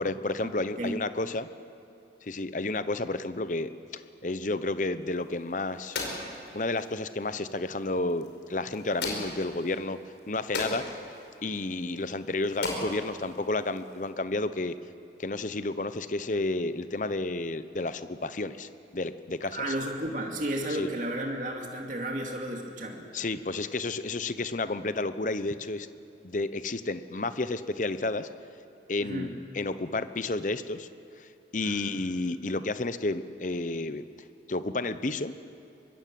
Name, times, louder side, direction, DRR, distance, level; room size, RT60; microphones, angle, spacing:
voice 1, 0.0-1.5 2.2-6.0 6.5-10.0 10.3-10.8 11.4-14.7 15.2-19.6 20.8-20.9 23.1-25.9 26.2-28.3 28.9-30.9 31.2-31.3 31.5-34.1 34.5-35.3, left 2 dB, 45° left, 12 dB, 0.9 m, -31 dB
sound 1, 5.1-14.1, left 2 dB, 85° left, 5.1 m, -39 dB
voice 2, 19.5-23.1 29.0-29.3 31.6-32.1, right 1 dB, 45° right, 1 dB, 2.5 m, -33 dB
24.5 x 21.0 x 7.7 m, 2.7 s
head